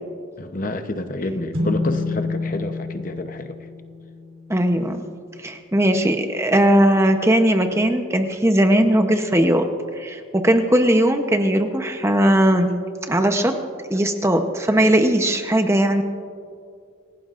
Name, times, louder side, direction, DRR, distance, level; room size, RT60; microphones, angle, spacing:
voice 1, 0.4-3.6, left 1 dB, 40° left, 7 dB, 0.8 m, -29 dB
sound 1, 1.5-5.1, left 3 dB, 80° right, 3.1 m, -28 dB
voice 2, 4.5-5.0 5.4-9.7 10.0-13.6 13.9-16.0, right 1 dB, 15° right, 5 dB, 0.8 m, -18 dB
27.5 x 17.5 x 2.5 m, 2.3 s
head